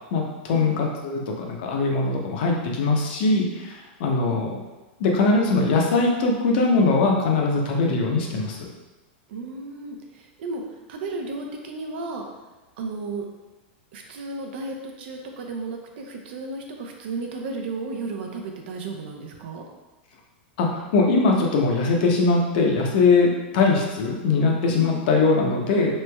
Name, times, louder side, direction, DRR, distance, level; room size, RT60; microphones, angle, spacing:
voice 1, 0.1-4.6 5.0-8.7 20.6-26.0, left 3 dB, 60° left, 0 dB, 0.6 m, -21 dB
voice 2, 9.3-10.6 10.9-12.2 12.8-13.3 13.9-19.7 24.7-25.1, right 3 dB, 70° right, 2 dB, 0.5 m, -34 dB
3.1 x 3.0 x 2.2 m, 1.1 s
supercardioid pair, 135°, 6 cm